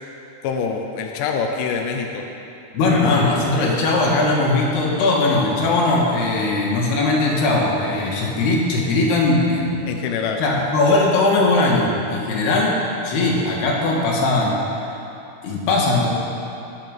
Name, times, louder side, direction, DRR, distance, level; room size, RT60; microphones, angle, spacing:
voice 1, 0.4-2.3 9.9-10.5, left 5 dB, 70° left, 2 dB, 2.2 m, -25 dB
voice 2, 2.7-9.9 10.4-14.6 15.4-16.1, left 2 dB, 90° left, -2 dB, 3.8 m, -19 dB
18.5 x 7.8 x 5.3 m, 2.8 s
omnidirectional pair, 4.5 m